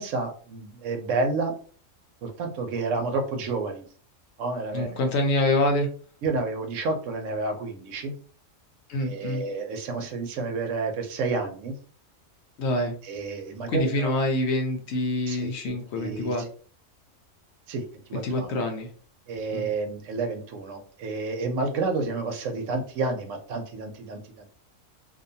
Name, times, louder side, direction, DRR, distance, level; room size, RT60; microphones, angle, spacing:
voice 1, 0.0-1.5 2.2-3.8 4.4-4.9 6.2-8.1 9.0-11.8 13.0-14.1 15.3-16.4 17.7-17.8 18.1-18.5 19.3-24.5, right 3 dB, 75° right, 5 dB, 1.0 m, -30 dB
voice 2, 4.7-5.9 8.9-9.4 12.6-12.9 13.7-16.4 18.1-18.9 19.5-19.7, left 1 dB, 65° left, 4 dB, 0.8 m, -26 dB
2.6 x 2.2 x 2.6 m, 0.43 s
omnidirectional pair, 1.3 m